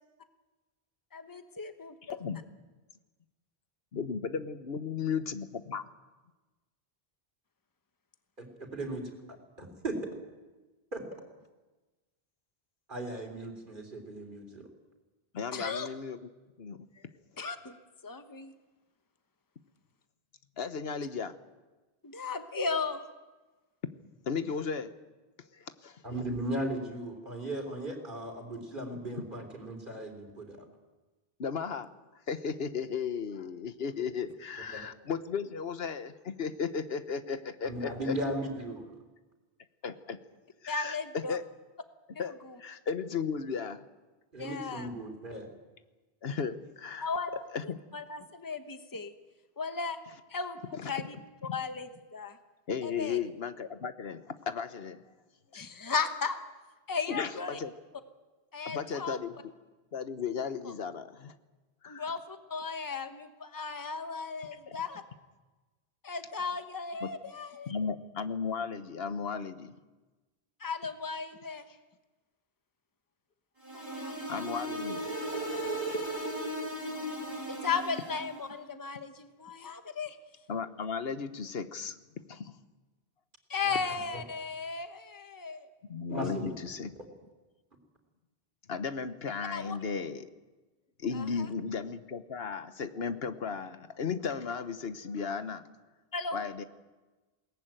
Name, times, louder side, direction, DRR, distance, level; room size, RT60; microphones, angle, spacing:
voice 1, 1.1-2.2 15.5-15.9 17.4-17.7 18.0-18.5 22.0-23.0 40.7-41.4 42.1-42.6 44.4-44.9 47.0-49.1 49.6-50.0 50.3-51.2 51.5-52.4 52.8-53.2 55.5-56.4 56.9-57.6 58.5-59.2 60.6-60.7 61.9-65.0 66.0-67.7 70.6-71.6 73.7-74.4 77.5-80.2 83.5-85.7 89.5-89.8 91.1-91.5 96.1-96.4, left 5 dB, 20° left, 8 dB, 1.1 m, -36 dB
voice 2, 3.9-5.8 15.3-16.2 16.6-17.1 20.6-21.3 24.2-24.9 25.6-26.0 28.9-29.2 31.4-31.9 32.3-38.1 39.8-40.2 40.6-41.4 42.2-43.8 46.2-47.1 47.5-47.8 50.8-50.9 51.5-51.6 52.7-55.0 57.1-57.7 58.6-59.3 59.9-61.3 61.8-62.0 64.7-64.8 67.0-67.1 67.7-69.7 74.3-75.1 75.3-76.4 77.0-77.1 80.5-82.0 82.3-82.5 85.8-86.9 88.7-90.3 91.0-95.6 96.3-96.6, left 6 dB, 70° left, 11 dB, 1.3 m, -35 dB
voice 3, 8.4-9.0 9.3-10.0 10.9-11.0 12.9-14.7 26.0-30.6 34.7-34.8 37.6-38.9 44.3-45.5 83.7-83.8 84.1-84.2 86.1-86.5, right 1 dB, 55° right, 3 dB, 3.8 m, -37 dB
sound 1, 73.6-78.4, right 1 dB, 30° right, 4.7 m, -36 dB
21.5 x 18.5 x 9.0 m, 1.2 s
omnidirectional pair, 1.0 m